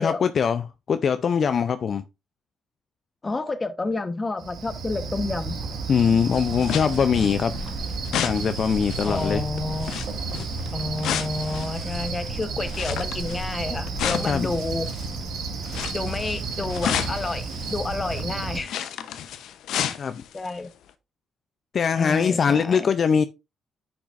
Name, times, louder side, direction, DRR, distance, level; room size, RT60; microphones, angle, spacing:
voice 1, 0.0-2.0 5.9-7.5 8.2-9.4 14.2-14.5 20.0-20.2 21.7-23.2, left 6 dB, 50° left, 0.5 m, -22 dB
voice 2, 3.2-5.6 9.0-9.9 10.7-14.9 15.9-18.8 20.3-20.7 21.9-22.9, left 3 dB, 25° left, 1.0 m, -30 dB
Cricket, 4.4-18.6, right 4 dB, 70° right, 1.9 m, -32 dB
sound 1, 6.0-15.2 15.6-20.6 20.9-21.0, left 9 dB, 80° left, 0.7 m, -33 dB
10.0 x 6.0 x 2.5 m
cardioid pair, 90°, 0 cm